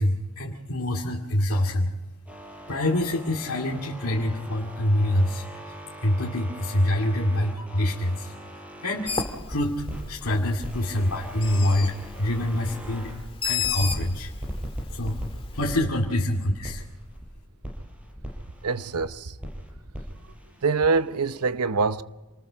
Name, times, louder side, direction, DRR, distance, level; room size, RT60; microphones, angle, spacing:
voice 1, 0.0-1.9 2.7-5.4 6.0-8.3 8.8-9.1 9.5-13.1 13.4-14.3 14.9-15.2 15.5-16.8, left 1 dB, 70° left, 2.3 m, -25 dB
sound 1, 2.3-10.1 10.6-13.2 13.6-17.3 17.6-19.1 19.4-21.5, equal, 5° right, 6.1 m, -40 dB
Bird, 9.1-15.7, left 6 dB, 25° left, 1.8 m, -34 dB
voice 2, 18.6-19.4 20.6-22.0, right 4 dB, 90° right, 0.8 m, -24 dB
28.0 x 20.0 x 5.1 m
head